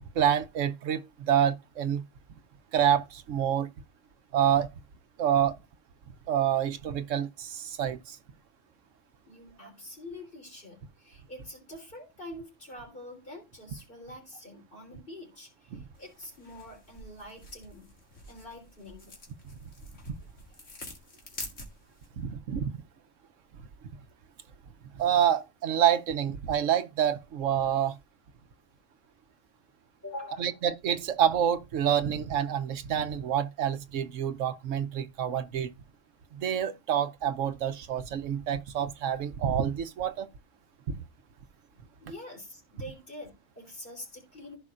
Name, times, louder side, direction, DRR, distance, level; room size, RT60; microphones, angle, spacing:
voice 1, 0.1-2.0 2.7-3.7 4.3-4.7 5.2-5.6 6.3-8.2 15.7-15.8 20.1-20.2 22.2-22.8 24.9-28.0 30.4-35.7 36.3-40.3 40.9-41.0, right 9 dB, 85° right, 1.1 m, -27 dB
voice 2, 9.3-17.9 18.3-19.2 30.0-30.6 42.0-44.6, left 1 dB, 45° left, 3.7 m, -45 dB
sound 1, 15.9-22.1, left 2 dB, 80° left, 2.3 m, -47 dB
15.0 x 5.2 x 2.5 m
omnidirectional pair, 1.3 m